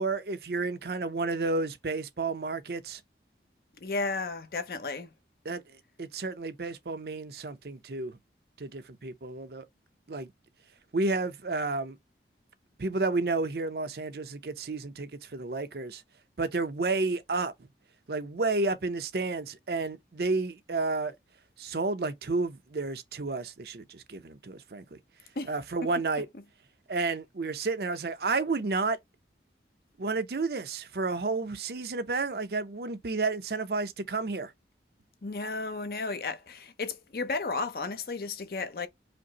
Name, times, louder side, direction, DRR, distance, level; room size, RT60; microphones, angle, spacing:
voice 1, 0.0-3.0 5.4-5.6 6.0-8.2 8.6-9.6 10.1-10.3 10.9-12.0 12.8-16.0 16.4-17.5 18.1-21.1 21.6-25.0 25.5-26.3 26.9-29.0 30.0-34.5, right 3 dB, 60° right, 0.6 m, -31 dB
voice 2, 3.8-5.1 25.4-25.5 35.2-38.9, left 3 dB, 55° left, 0.6 m, -33 dB
5.1 x 2.0 x 2.8 m
head